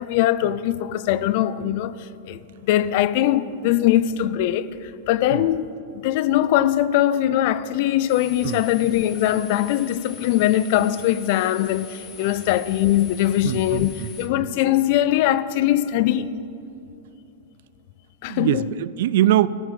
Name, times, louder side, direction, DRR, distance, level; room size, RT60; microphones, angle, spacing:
voice 1, 0.0-5.8 6.0-16.3 18.2-18.7, left 12 dB, 55° left, 0.4 m, -21 dB
sound 1, 8.1-14.3, left 5 dB, 30° left, 1.3 m, -43 dB
voice 2, 13.4-14.1 14.4-14.5 18.3-19.5, right 13 dB, 65° right, 0.3 m, -22 dB
13.5 x 6.1 x 6.8 m
hypercardioid pair, 135°, 0 cm